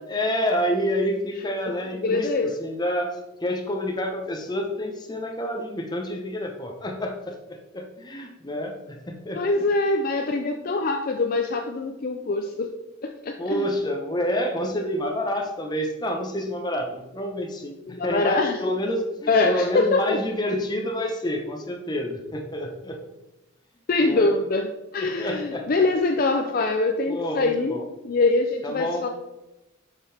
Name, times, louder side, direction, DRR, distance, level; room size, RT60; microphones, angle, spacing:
voice 1, 0.1-9.6 13.4-23.0 24.0-24.3 25.0-25.9 26.1-26.5 27.1-27.8 28.6-29.1, equal, 20° left, 2 dB, 0.9 m, -28 dB
voice 2, 2.0-2.5 9.3-12.7 13.0-13.6 17.9-18.6 19.3-20.2 23.9-24.7 24.9-27.8 28.0-29.1, left 3 dB, 45° left, 4 dB, 0.4 m, -23 dB
7.2 x 5.7 x 3.4 m, 0.96 s
head